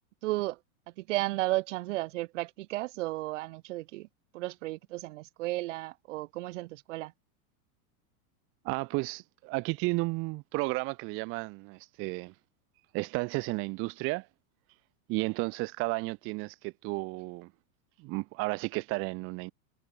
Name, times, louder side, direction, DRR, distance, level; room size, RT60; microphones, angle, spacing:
voice 1, 0.2-0.6 1.0-4.1 4.3-7.1, right 19 dB, 55° right, 1.7 m, -33 dB
voice 2, 8.6-12.3 12.9-14.3 15.1-17.5 18.0-19.5, right 26 dB, 30° right, 1.1 m, -33 dB
supercardioid pair, 170°, 43 cm